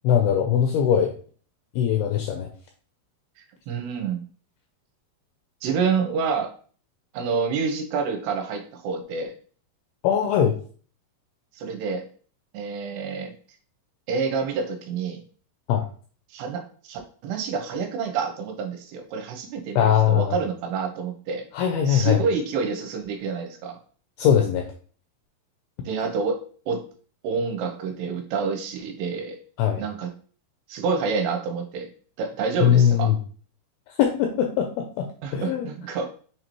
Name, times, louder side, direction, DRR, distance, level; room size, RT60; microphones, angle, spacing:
voice 1, 0.0-1.1 1.8-2.5 10.0-10.6 15.7-15.8 19.8-20.4 21.5-22.2 24.2-24.7 29.6-29.8 32.6-33.2 33.9-35.1 35.3-35.7, left 9 dB, 85° left, 3 dB, 2.2 m, -21 dB
voice 2, 3.7-4.2 5.6-6.5 7.1-9.3 11.6-12.1 12.5-13.3 14.1-15.2 16.3-21.5 21.9-23.8 25.9-26.9 27.2-29.4 29.8-30.1 30.7-31.9 32.2-33.1 35.2-36.1, right 5 dB, 80° right, 4 dB, 2.6 m, -28 dB
6.5 x 2.6 x 3.0 m, 0.43 s
omnidirectional pair, 4.9 m